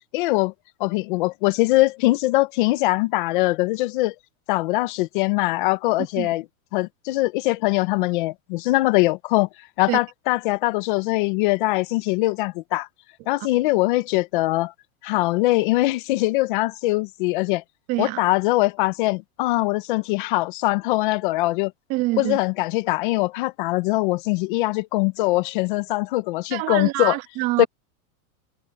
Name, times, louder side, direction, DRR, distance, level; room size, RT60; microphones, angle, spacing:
voice 1, 0.1-0.5 0.8-4.1 4.5-6.4 6.7-9.5 9.8-12.9 13.3-14.7 15.0-17.6 18.0-21.7 22.2-27.1 27.6-27.7, left 20 dB, 35° left, 0.8 m, -22 dB
voice 2, 17.9-18.2 21.9-22.4 26.5-27.7, right 19 dB, 30° right, 1.7 m, -25 dB
supercardioid pair, 175°, 44 cm